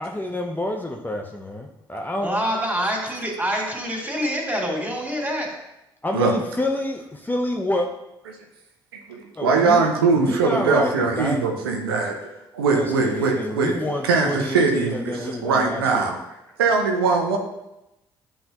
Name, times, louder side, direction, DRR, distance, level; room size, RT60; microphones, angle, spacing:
voice 1, 0.0-2.3 6.0-7.9 9.4-11.4 12.7-16.1, left 1 dB, 15° left, 1 dB, 0.9 m, -28 dB
voice 2, 2.2-5.5, equal, 15° right, -2 dB, 3.0 m, -26 dB
voice 3, 9.1-13.7 14.0-16.2 16.6-17.4, right 4 dB, 80° right, 2 dB, 0.8 m, -21 dB
10.0 x 5.6 x 3.0 m, 0.91 s
figure-of-eight pair, 45°, 12 cm